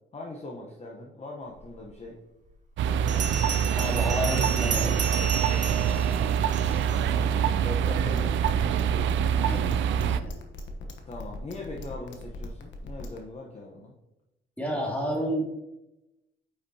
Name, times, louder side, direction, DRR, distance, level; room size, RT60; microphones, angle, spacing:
voice 1, 0.1-2.2 7.0-8.8 11.1-13.9, left 2 dB, 35° left, -1 dB, 1.1 m, -40 dB
Bell, 1.9-2.0 3.1-7.0, right 5 dB, 40° right, 1.2 m, -33 dB
sound 1, 2.8-10.2, right 8 dB, 70° right, 0.4 m, -25 dB
voice 2, 3.7-5.0 9.4-9.7 10.1-10.3 14.6-15.4, equal, 5° left, -3 dB, 2.4 m, -30 dB
sound 2, 7.8-13.2, left 3 dB, 65° left, 1.1 m, -40 dB
8.5 x 5.4 x 2.9 m, 0.94 s
cardioid pair, 90°, 20 cm